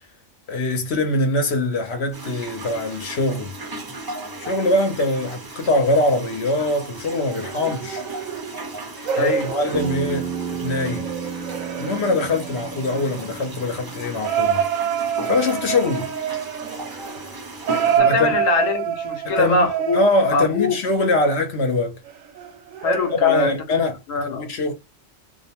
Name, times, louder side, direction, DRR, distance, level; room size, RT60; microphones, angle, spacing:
voice 1, 0.5-3.6 4.4-8.0 9.2-11.1 11.8-14.6 15.3-16.1 18.0-18.4 19.2-19.7 19.9-22.0 23.1-24.0 24.3-24.7, left 2 dB, 60° left, 1.0 m, -22 dB
sound 1, 2.1-18.0, right 2 dB, 35° right, 0.3 m, -36 dB
sound 2, 5.6-6.1 7.3-13.3 14.2-20.8 22.1-23.4, right 9 dB, 85° right, 1.0 m, -27 dB
voice 2, 9.2-9.5 17.9-20.1 20.3-20.8 22.8-24.5, left 3 dB, 80° left, 1.1 m, -23 dB
Bass guitar, 9.7-14.0, right 6 dB, 60° right, 0.7 m, -32 dB
2.5 x 2.2 x 2.8 m
omnidirectional pair, 1.3 m